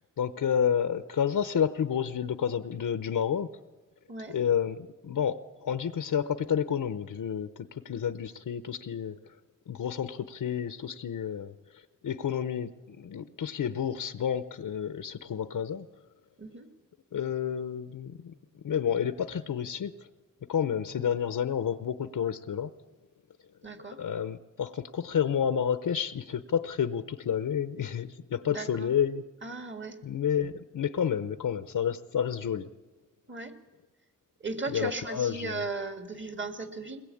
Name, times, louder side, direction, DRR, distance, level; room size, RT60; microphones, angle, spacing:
voice 1, 0.2-3.5 4.3-4.8 5.0-7.5 7.8-9.1 9.7-11.5 12.0-15.8 17.1-18.1 18.6-19.9 20.5-22.7 24.0-29.2 30.0-32.7 34.7-35.6, left 8 dB, 80° left, 12 dB, 0.8 m, -30 dB
voice 2, 23.6-24.0 28.5-28.9 29.4-30.0 33.3-33.5 34.4-37.0, right 3 dB, 35° right, 7 dB, 2.2 m, -36 dB
22.0 x 20.5 x 8.5 m, 1.2 s
wide cardioid pair, 115°, 32 cm